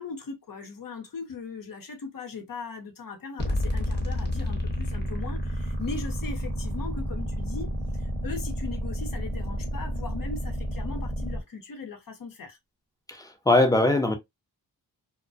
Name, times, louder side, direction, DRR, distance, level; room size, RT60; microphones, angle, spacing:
voice 1, 0.0-12.6, left 4 dB, 55° left, 0.8 m, -39 dB
sound 1, 3.4-11.4, equal, 25° left, 1.1 m, -30 dB
voice 2, 13.1-14.1, left 2 dB, 10° left, 0.7 m, -21 dB
2.2 x 2.2 x 2.5 m
cardioid pair, 60°, 41 cm